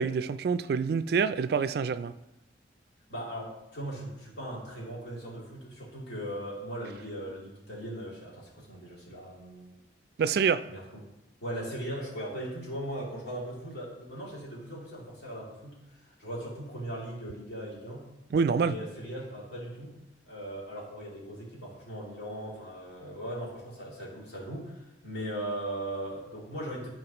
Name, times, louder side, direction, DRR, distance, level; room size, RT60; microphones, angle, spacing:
voice 1, 0.0-2.1 10.2-10.6 18.3-18.8, right 6 dB, 60° right, 13 dB, 0.3 m, -26 dB
voice 2, 3.1-9.7 10.6-11.0 11.4-18.1 18.6-19.9 20.3-26.9, right 1 dB, 75° left, -5 dB, 2.8 m, -39 dB
13.0 x 4.5 x 2.9 m, 0.93 s
head